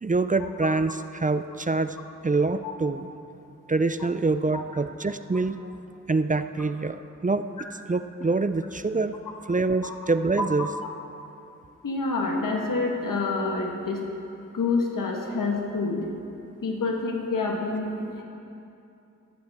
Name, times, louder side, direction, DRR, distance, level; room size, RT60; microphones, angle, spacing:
voice 1, 0.0-2.0 2.2-3.1 3.7-5.6 6.1-7.4 7.9-9.2 9.5-10.7, right 3 dB, 25° right, 11 dB, 0.5 m, -25 dB
voice 2, 10.4-10.9 11.8-14.0 14.5-16.0 16.6-18.2, left 3 dB, 90° left, 1 dB, 1.4 m, -28 dB
13.5 x 12.5 x 3.6 m, 2.7 s
cardioid pair, 40°, 32 cm